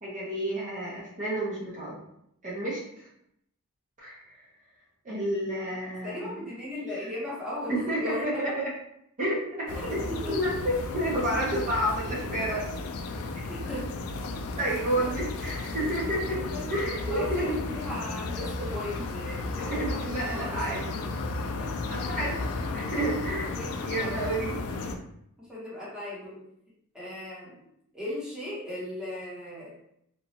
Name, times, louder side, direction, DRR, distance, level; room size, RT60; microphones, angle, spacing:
voice 1, 0.0-2.0 2.4-3.1 4.0-4.2 5.0-6.5 7.7-8.7 9.2-9.8 10.2-12.7 13.3-13.4 14.6-17.7 19.7-20.8 21.9-22.4 22.7-24.6, right 1 dB, 35° right, -6 dB, 0.7 m, -30 dB
voice 2, 6.0-8.5 9.7-10.4 11.3-11.4 13.5-13.9 14.6-15.3 16.3-16.7 17.1-21.1 21.4-22.9 23.4-24.3 24.7-24.9 25.4-26.4 26.9-27.6 27.9-29.8, left 1 dB, 5° right, -8 dB, 0.9 m, -38 dB
sound 1, 9.7-25.0, left 3 dB, 85° left, 0.3 m, -34 dB
2.9 x 2.2 x 2.8 m, 0.74 s
head